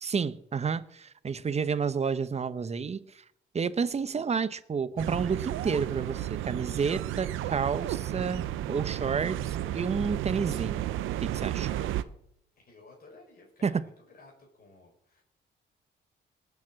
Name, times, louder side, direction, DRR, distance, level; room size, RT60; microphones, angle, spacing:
voice 1, 0.0-3.2 3.5-8.4 8.7-10.9 11.2-11.7 13.6-13.8, right 6 dB, 35° right, 0.9 m, -30 dB
sound 1, 5.0-12.0, right 13 dB, 90° right, 0.7 m, -32 dB
voice 2, 11.6-12.1 12.6-15.2, left 3 dB, 50° left, 5.1 m, -54 dB
19.5 x 7.3 x 7.6 m
cardioid pair, 90°, 20 cm